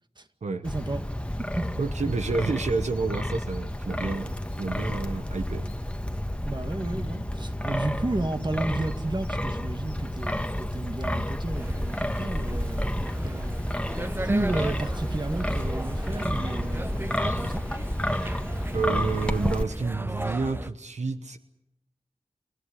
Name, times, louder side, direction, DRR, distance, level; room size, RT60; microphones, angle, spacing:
Wind, 0.6-19.6, left 1 dB, 10° left, 1.6 m, -30 dB
voice 1, 0.6-1.0 1.6-1.7 2.1-2.2 6.4-13.6 14.0-17.7, right 2 dB, 40° right, 2.0 m, -32 dB
voice 2, 1.8-5.7 18.7-21.4, right 4 dB, 85° right, 1.1 m, -29 dB
sound 1, 11.5-20.7, right 1 dB, 20° right, 1.0 m, -35 dB
29.0 x 13.5 x 9.9 m
wide cardioid pair, 40°, 12 cm